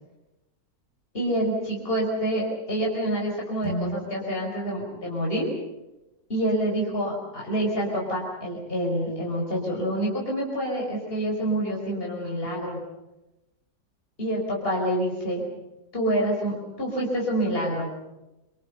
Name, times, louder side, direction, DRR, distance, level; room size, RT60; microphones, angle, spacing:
voice 1, 1.1-5.5 6.3-12.8 14.2-15.4 15.9-17.9, right 1 dB, 35° left, -2 dB, 5.5 m, -27 dB
sound 1, 3.6-6.0, equal, 55° right, 7.6 m, -37 dB
27.0 x 24.5 x 6.9 m, 0.97 s
omnidirectional pair, 1.8 m